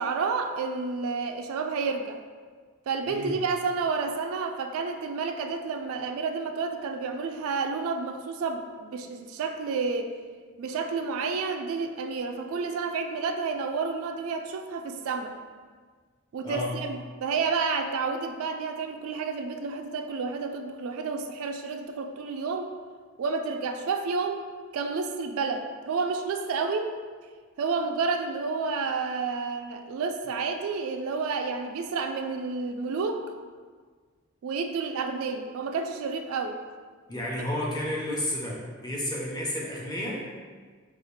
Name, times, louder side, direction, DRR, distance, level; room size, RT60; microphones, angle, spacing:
voice 1, 0.0-2.2 2.9-10.1 10.6-15.3 16.3-22.7 23.2-24.4 24.7-26.9 27.6-33.2 34.4-36.6, right 4 dB, 75° right, 6 dB, 0.3 m, -30 dB
voice 2, 16.4-16.8 37.1-40.2, left 1 dB, 20° left, -4 dB, 0.6 m, -31 dB
4.8 x 2.4 x 3.1 m, 1.5 s
head